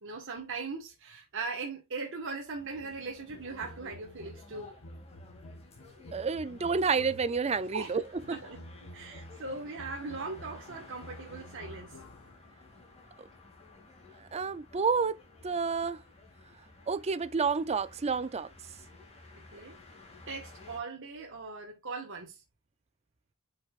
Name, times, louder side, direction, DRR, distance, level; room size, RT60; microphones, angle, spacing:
voice 1, 0.0-4.7 7.7-8.0 8.3-8.6 8.9-11.9 19.5-19.8 20.3-22.4, right 4 dB, 60° right, 1.4 m, -39 dB
sound 1, 2.5-20.8, left 3 dB, 30° left, 2.3 m, -54 dB
sound 2, 3.3-7.5 8.2-12.5, equal, 80° left, 1.1 m, -50 dB
voice 2, 6.1-8.0 14.3-15.2 15.4-16.0 16.9-18.5, right 5 dB, 30° right, 0.4 m, -29 dB
8.1 x 5.6 x 2.4 m
head